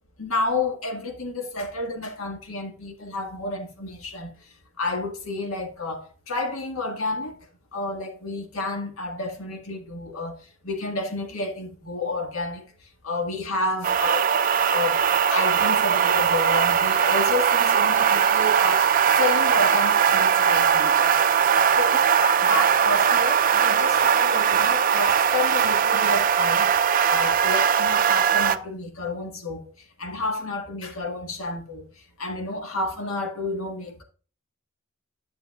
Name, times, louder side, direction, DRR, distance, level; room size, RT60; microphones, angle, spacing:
voice 1, 0.2-4.3 4.8-7.4 7.7-10.4 10.6-12.7 13.0-14.4 14.7-15.0 15.3-21.0 21.8-26.7 27.1-29.6 30.0-31.9 32.2-34.0, left 2 dB, 85° left, 1.6 m, -30 dB
sound 1, 13.8-28.6, right 7 dB, 40° right, 0.3 m, -20 dB
10.5 x 6.7 x 2.3 m
head